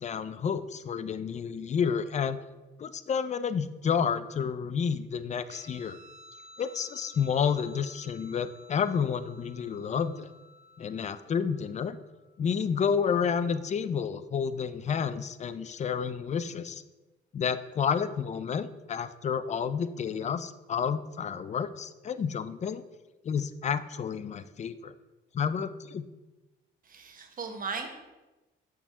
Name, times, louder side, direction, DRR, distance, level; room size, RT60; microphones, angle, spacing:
voice 1, 0.0-2.4 2.8-6.0 6.6-10.3 10.8-12.0 12.4-16.8 17.3-22.8 23.2-24.9 25.3-26.1, left 7 dB, 35° left, 13 dB, 0.4 m, -30 dB
Guitar, 5.5-12.4, left 1 dB, 90° right, 2.3 m, -54 dB
voice 2, 26.8-27.9, right 5 dB, 45° right, 4 dB, 1.2 m, -37 dB
7.4 x 3.6 x 5.4 m, 1.1 s
cardioid pair, 90°, 20 cm